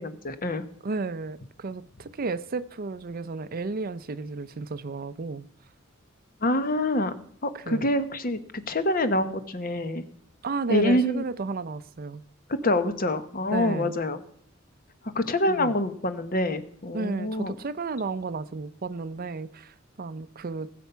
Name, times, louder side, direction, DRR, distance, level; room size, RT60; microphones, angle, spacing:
voice 1, 0.0-0.6 6.4-7.1 7.4-10.0 10.7-11.2 12.6-14.2 15.1-17.5, left 1 dB, 45° left, 1.1 m, -26 dB
voice 2, 0.8-5.5 7.5-7.9 10.4-12.2 13.5-13.9 15.5-15.7 16.9-20.7, right 3 dB, 45° right, 0.5 m, -33 dB
19.5 x 7.0 x 5.7 m
head